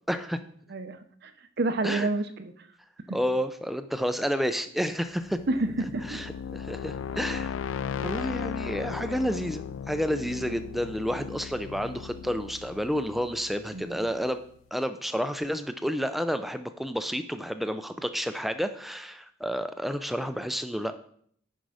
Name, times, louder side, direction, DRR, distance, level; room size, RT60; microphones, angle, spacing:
voice 1, 0.1-0.4 1.8-2.1 3.1-5.4 6.1-7.5 8.0-14.4 14.7-20.9, equal, ahead, 9 dB, 0.4 m, -30 dB
voice 2, 0.7-1.3 1.6-2.5 3.1-3.2 5.5-6.2 13.7-14.1, right 2 dB, 50° right, 9 dB, 0.6 m, -29 dB
sound 1, 5.2-14.1, left 7 dB, 70° left, 0.3 m, -36 dB
10.0 x 5.3 x 4.9 m, 0.63 s
head